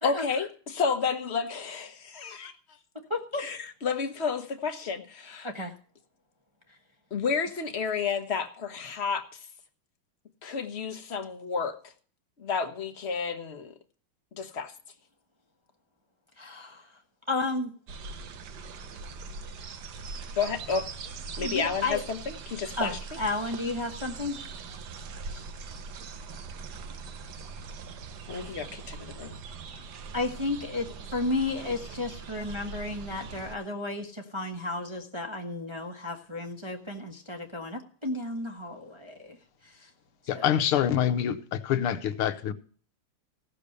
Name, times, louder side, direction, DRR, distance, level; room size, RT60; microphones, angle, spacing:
voice 1, 0.0-2.5 3.4-5.5 7.1-9.5 10.4-11.8 12.4-13.7 14.4-14.7 20.4-20.9 21.4-23.0 28.3-29.4, left 5 dB, 35° left, 1.2 m, -31 dB
voice 2, 3.1-3.5 5.4-5.7 16.4-16.9 17.3-17.7 21.4-22.0 22.8-24.4 25.3-25.4 30.1-39.4 39.6-39.9 40.3-40.5, left 2 dB, 15° right, 1.1 m, -33 dB
sound 1, 17.9-33.6, right 4 dB, 55° right, 1.4 m, -41 dB
voice 3, 40.3-42.5, left 10 dB, 80° left, 1.8 m, -26 dB
16.0 x 6.9 x 6.7 m
omnidirectional pair, 2.4 m